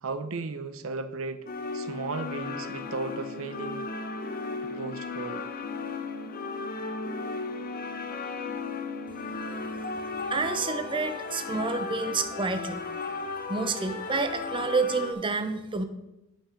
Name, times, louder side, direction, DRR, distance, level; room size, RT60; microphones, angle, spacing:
voice 1, 0.0-1.5 1.7-3.9 4.7-5.4, right 3 dB, 70° right, 11 dB, 0.6 m, -35 dB
sound 1, 1.5-15.1, left 4 dB, 45° left, 0.8 m, -35 dB
voice 2, 10.3-12.9 13.5-15.8, right 4 dB, 25° right, 8 dB, 0.6 m, -29 dB
8.6 x 5.9 x 5.6 m, 0.93 s
head